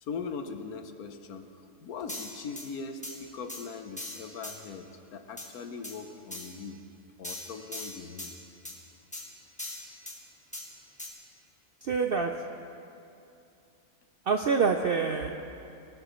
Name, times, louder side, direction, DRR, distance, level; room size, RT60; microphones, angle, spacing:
voice 1, 0.0-6.8 7.2-8.3, left 5 dB, 75° left, 7 dB, 1.3 m, -40 dB
sound 1, 2.1-2.7 3.0-3.2 3.5-3.6 4.0-4.6 5.4-5.5 5.8-6.0 6.3-6.5 7.2-8.3 8.6-8.8 9.1-9.2 9.6-10.2 10.5-10.7 11.0-11.1, left 2 dB, 5° left, 1.6 m, -39 dB
voice 2, 11.8-12.3 14.3-15.4, right 5 dB, 75° right, 5 dB, 0.5 m, -26 dB
21.5 x 12.0 x 3.1 m, 2.6 s
omnidirectional pair, 1.6 m